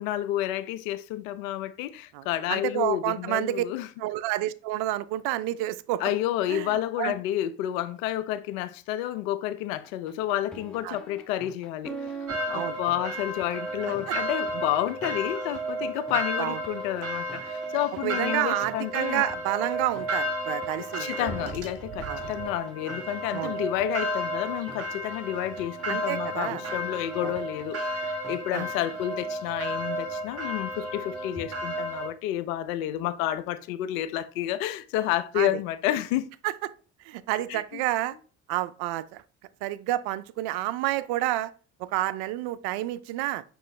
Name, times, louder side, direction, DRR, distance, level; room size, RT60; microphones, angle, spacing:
voice 1, 0.0-3.9 6.0-19.2 20.8-36.2 37.5-37.6, left 13 dB, 80° left, 0.5 m, -30 dB
voice 2, 2.1-3.6 4.0-6.0 6.5-7.1 10.8-11.0 12.5-12.8 14.1-14.2 16.4-16.6 18.0-21.5 22.1-22.2 23.3-23.6 25.9-26.6 27.2-27.3 28.5-28.7 35.4-35.5 36.4-36.5 37.0-38.1 38.5-39.2 39.6-41.5 41.8-43.4, right 15 dB, 65° right, 0.5 m, -29 dB
sound 1, 9.8-28.5, right 3 dB, ahead, 0.8 m, -45 dB
sound 2, 12.3-32.1, right 1 dB, 35° right, 1.5 m, -33 dB
5.5 x 3.0 x 3.2 m
hypercardioid pair, 60°, 40 cm